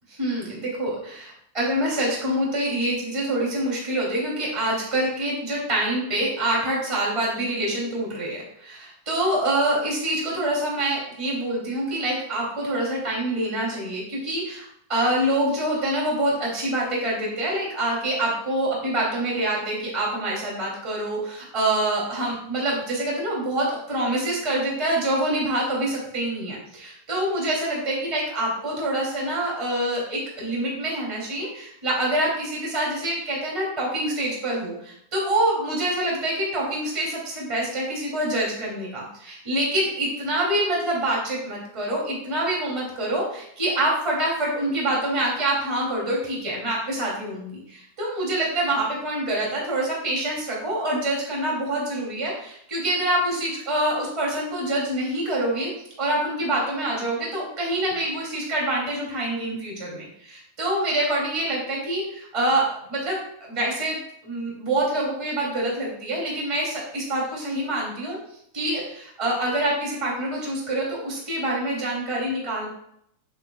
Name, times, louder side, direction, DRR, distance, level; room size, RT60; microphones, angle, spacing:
voice 1, 0.1-55.7 56.0-68.2 68.5-72.7, right 1 dB, 10° right, -4 dB, 2.1 m, -26 dB
9.6 x 7.6 x 2.4 m, 0.71 s
omnidirectional pair, 4.7 m